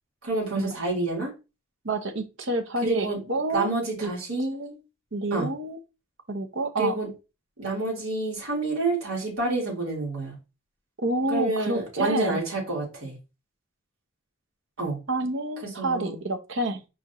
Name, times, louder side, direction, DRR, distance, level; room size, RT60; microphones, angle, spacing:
voice 1, 0.2-1.3 2.8-3.2 3.5-4.7 5.3-5.5 6.8-7.1 7.6-10.3 11.3-13.2 14.8-15.0 15.6-16.2, right 2 dB, 85° right, -4 dB, 4.1 m, -28 dB
voice 2, 1.8-3.7 4.0-4.1 4.5-4.8 5.1-5.8 6.3-6.9 11.0-12.4 15.1-16.8, right 2 dB, 60° right, 7 dB, 1.0 m, -28 dB
6.1 x 5.0 x 3.1 m, 0.28 s
head